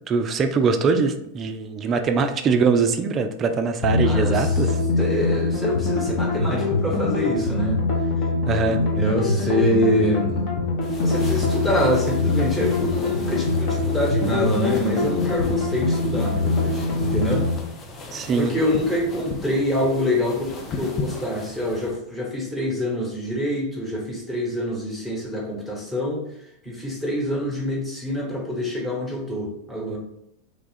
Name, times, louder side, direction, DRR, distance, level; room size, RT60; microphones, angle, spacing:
voice 1, 0.1-4.8 8.5-8.8 18.1-18.5, right 4 dB, 25° right, 7 dB, 0.3 m, -22 dB
sound 1, 3.8-17.5, left 3 dB, 45° left, 0.9 m, -23 dB
voice 2, 4.0-4.5 5.0-7.8 8.9-10.5 11.0-17.5 18.3-26.2 26.6-30.0, equal, 5° left, -3 dB, 1.2 m, -25 dB
sound 2, 10.8-22.0, left 3 dB, 25° left, 0.5 m, -36 dB
3.1 x 2.3 x 4.0 m, 0.74 s
figure-of-eight pair, 90°, 0 cm